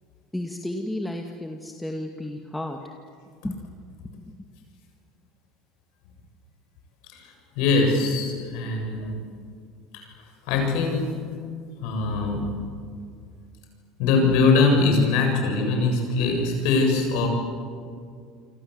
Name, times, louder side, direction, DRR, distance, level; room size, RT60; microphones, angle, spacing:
voice 1, 0.3-2.8 3.4-3.6 4.3-4.4, left 1 dB, 5° left, 2 dB, 2.2 m, -32 dB
voice 2, 7.6-9.2 9.9-10.0 10.5-11.1 11.8-12.5 14.0-17.3, left 3 dB, 70° left, 3 dB, 7.3 m, -22 dB
28.0 x 25.5 x 8.0 m, 2.2 s
supercardioid pair, 90°, 0 cm